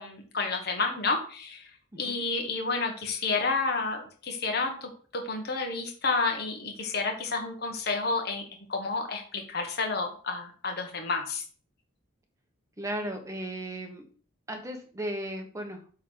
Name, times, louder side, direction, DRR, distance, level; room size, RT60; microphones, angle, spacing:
voice 1, 0.0-1.6 2.0-11.4, left 3 dB, 50° left, 3 dB, 1.5 m, -30 dB
voice 2, 12.8-14.0 14.5-15.8, right 1 dB, 15° right, 3 dB, 1.3 m, -35 dB
8.2 x 3.7 x 6.4 m, 0.42 s
head